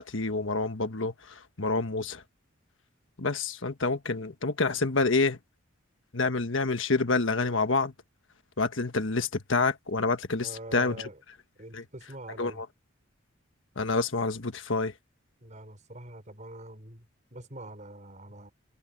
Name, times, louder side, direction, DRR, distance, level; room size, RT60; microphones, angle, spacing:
voice 1, 0.0-2.2 3.2-5.4 6.1-7.9 8.6-11.0 11.7-11.8 12.4-12.6 13.8-14.9, left 3 dB, 65° left, 1.5 m, -28 dB
voice 2, 10.4-11.2 11.6-12.6 15.4-18.5, right 1 dB, 35° right, 6.0 m, -44 dB
head